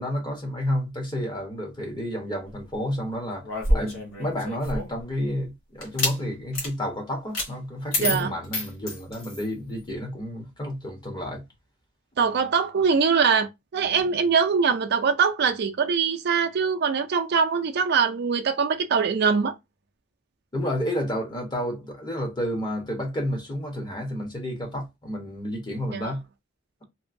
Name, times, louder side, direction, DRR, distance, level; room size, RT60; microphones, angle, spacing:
voice 1, 0.0-3.5 3.7-11.4 20.5-26.2, equal, 20° left, 1.0 m, -30 dB
sound 1, 3.4-5.0 5.8-6.2 6.5-6.7 7.3-7.5 7.9-9.5, left 1 dB, 85° left, 1.3 m, -27 dB
voice 2, 8.0-8.3 12.2-19.5 25.9-26.0, right 6 dB, 55° right, 0.4 m, -23 dB
2.9 x 2.7 x 2.5 m
head